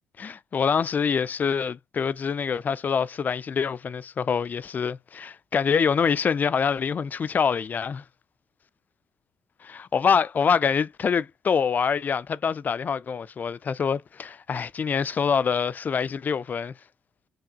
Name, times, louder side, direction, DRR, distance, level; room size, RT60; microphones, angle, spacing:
voice 1, 0.2-8.0 9.6-16.7, left 6 dB, 40° left, 0.3 m, -25 dB
4.6 x 2.8 x 2.4 m
hypercardioid pair, 45°, 4 cm